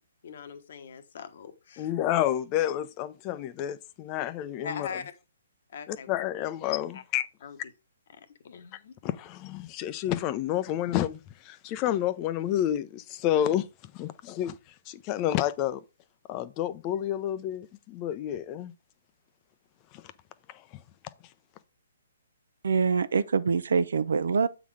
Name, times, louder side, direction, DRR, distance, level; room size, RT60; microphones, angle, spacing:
voice 1, 0.2-1.9 4.6-5.0 5.7-6.1 6.9-7.0 7.4-7.6 8.2-8.9, left 6 dB, 55° left, 1.2 m, -41 dB
voice 2, 1.8-4.9 5.9-7.3 9.0-13.6 13.9-14.6 14.9-15.8 16.3-18.7 19.9-20.0 20.5-20.6, left 12 dB, 30° left, 0.7 m, -29 dB
voice 3, 22.6-24.5, right 5 dB, 70° right, 0.7 m, -25 dB
8.2 x 4.0 x 4.9 m
figure-of-eight pair, 130°, 0 cm